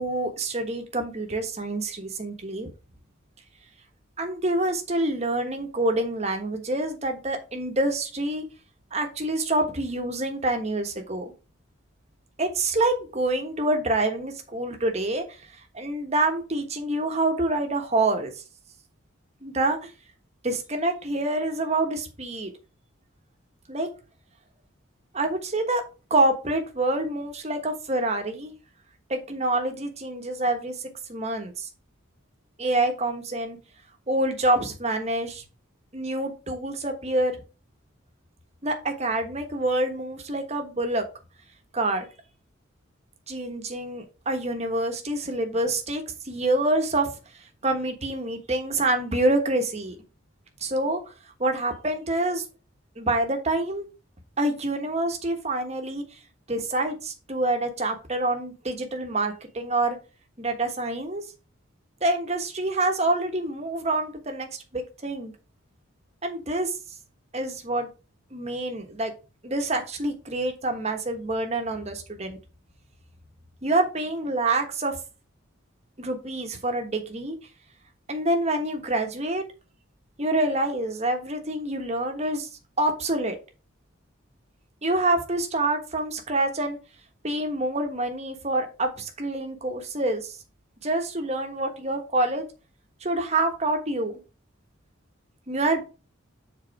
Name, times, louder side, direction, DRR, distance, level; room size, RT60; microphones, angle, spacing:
voice 1, 0.0-2.7 4.2-8.4 8.9-11.3 12.4-15.2 15.7-18.4 19.4-19.9 20.4-22.5 23.7-23.9 25.1-25.8 26.1-28.5 29.1-30.7 31.1-31.7 32.6-33.6 34.1-35.4 35.9-37.4 38.6-41.0 41.7-42.1 43.3-47.1 47.6-50.0 50.6-51.1 51.4-52.4 53.0-53.9 54.4-56.2 56.5-60.0 60.4-61.2 62.0-65.3 66.2-66.8 67.3-67.9 68.3-69.1 69.4-72.4 73.6-75.0 76.0-77.4 78.1-79.4 80.2-82.5 82.8-83.4 84.8-86.8 87.2-90.4 90.8-92.5 93.0-94.2 95.5-95.8, right 2 dB, 30° right, 5 dB, 1.2 m, -26 dB
7.4 x 4.0 x 4.7 m, 0.32 s
head